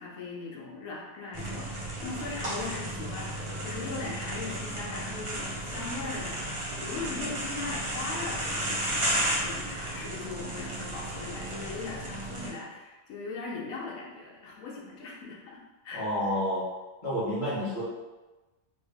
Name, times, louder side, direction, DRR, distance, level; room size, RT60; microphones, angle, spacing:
voice 1, 0.0-16.1, left 4 dB, 85° left, -3 dB, 1.2 m, -39 dB
sound 1, 1.3-12.5, right 1 dB, 35° right, 0.5 m, -33 dB
voice 2, 15.9-16.6 17.0-17.8, equal, 40° left, -10 dB, 1.4 m, -29 dB
3.1 x 2.7 x 3.4 m, 1.1 s
omnidirectional pair, 1.4 m